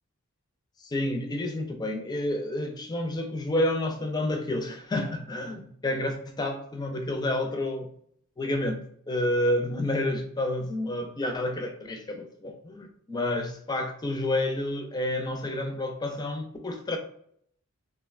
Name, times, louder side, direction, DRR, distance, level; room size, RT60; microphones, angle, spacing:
voice 1, 0.8-7.9 8.4-17.0, left 1 dB, 20° left, 0.4 m, -29 dB
3.5 x 2.1 x 2.3 m
head